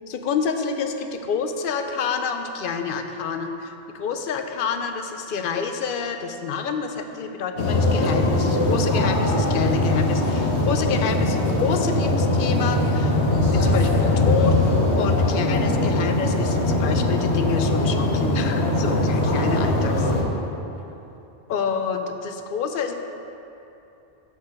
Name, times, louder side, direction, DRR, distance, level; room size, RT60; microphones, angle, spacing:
voice 1, 0.1-13.2 13.5-14.5 14.9-20.0 21.5-22.9, left 6 dB, 60° left, 6 dB, 0.6 m, -28 dB
sound 1, 7.6-20.2, left 2 dB, 85° left, 1.2 m, -21 dB
5.7 x 5.6 x 6.0 m, 2.9 s
omnidirectional pair, 1.1 m